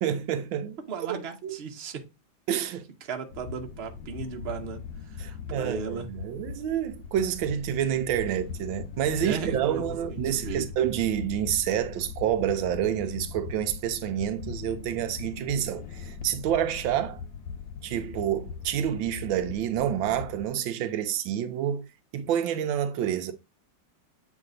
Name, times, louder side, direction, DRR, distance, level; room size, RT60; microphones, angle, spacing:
voice 1, 0.0-0.8 1.4-1.6 2.5-2.8 5.2-17.2 17.8-21.8 22.1-23.3, right 10 dB, 80° right, 1.4 m, -28 dB
voice 2, 0.9-2.0 3.1-4.8 5.1-6.1 9.2-10.7, right 6 dB, 45° right, 0.9 m, -36 dB
sound 1, 3.3-20.4, left 6 dB, 75° left, 1.4 m, -40 dB
8.1 x 3.2 x 3.8 m
omnidirectional pair, 2.1 m